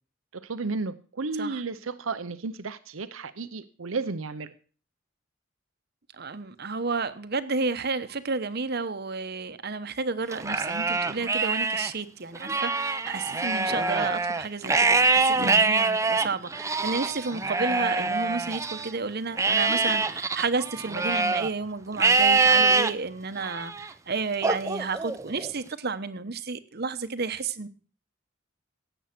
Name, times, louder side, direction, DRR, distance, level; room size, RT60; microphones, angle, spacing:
voice 1, 0.3-4.5 15.4-15.7, right 3 dB, 80° right, 13 dB, 0.8 m, -33 dB
voice 2, 6.1-27.7, right 4 dB, 50° right, 12 dB, 1.0 m, -31 dB
Livestock farm animals working animals, 10.3-11.9 12.3-18.9 19.4-21.5 22.0-22.9 23.4-23.9 24.4-25.5, right 4 dB, 15° right, 0.6 m, -24 dB
17.0 x 8.1 x 6.0 m, 0.40 s
head